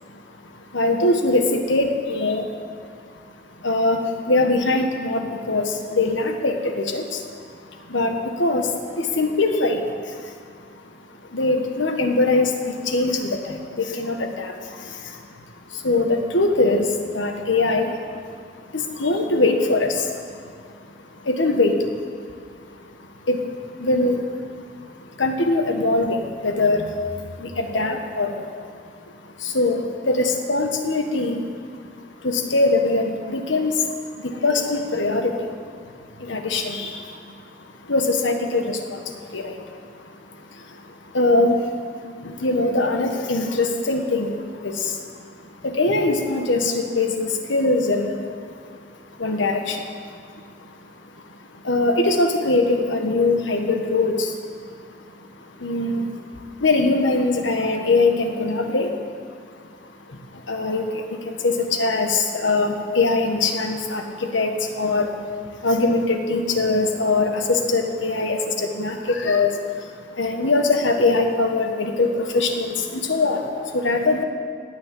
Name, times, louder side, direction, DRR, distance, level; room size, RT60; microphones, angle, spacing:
voice 1, 0.4-2.5 3.6-7.4 7.7-10.3 10.8-10.9 11.3-15.2 15.7-20.5 21.1-21.9 23.0-24.2 25.0-28.7 29.2-31.5 32.2-35.6 35.8-35.9 36.2-40.1 40.4-48.2 48.7-50.7 51.3-54.4 54.9-55.3 55.6-59.1 59.8-74.2, left 2 dB, 90° left, 4 dB, 1.5 m, -23 dB
18.0 x 6.5 x 8.5 m, 2.2 s
head